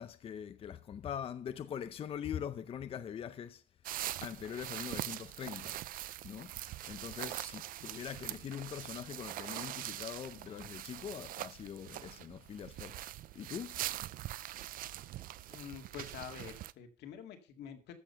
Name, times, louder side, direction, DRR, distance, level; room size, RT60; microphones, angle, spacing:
voice 1, 0.0-3.6 4.2-5.8 6.2-6.5 6.8-13.0 13.3-13.8, left 8 dB, 35° left, 0.6 m, -43 dB
sound 1, 3.8-16.7, right 14 dB, 60° right, 0.5 m, -43 dB
voice 2, 15.5-17.9, left 8 dB, 90° left, 2.1 m, -47 dB
13.5 x 7.0 x 5.6 m
cardioid pair, 175°, 17 cm